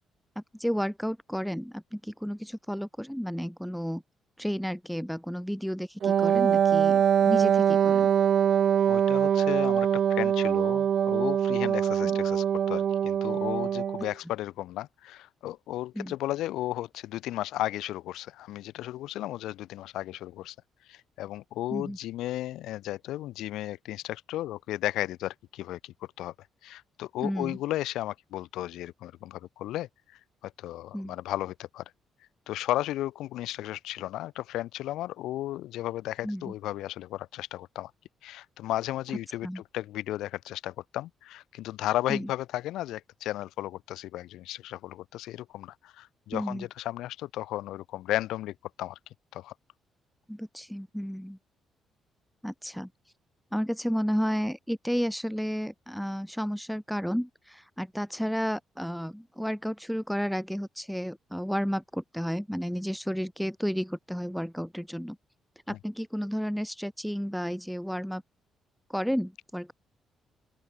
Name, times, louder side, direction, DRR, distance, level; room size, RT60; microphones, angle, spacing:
voice 1, 0.3-4.0 4.4-8.1 12.0-12.2 15.9-16.1 21.7-22.0 27.2-27.6 30.9-31.2 36.2-36.5 39.4-39.6 42.1-42.3 46.3-46.6 50.3-51.4 52.4-52.9 53.5-65.2 65.7-68.2 68.9-69.7, equal, ahead, 3.4 m, -32 dB
Wind instrument woodwind instrument, 6.0-14.1, right 8 dB, 60° right, 2.2 m, -23 dB
voice 2, 8.9-20.5 20.9-26.3 26.6-29.9 30.4-31.8 32.5-37.9 38.2-49.0 49.3-49.5 65.7-65.8, left 14 dB, 85° left, 5.9 m, -34 dB
open air
cardioid pair, 90°, 0 cm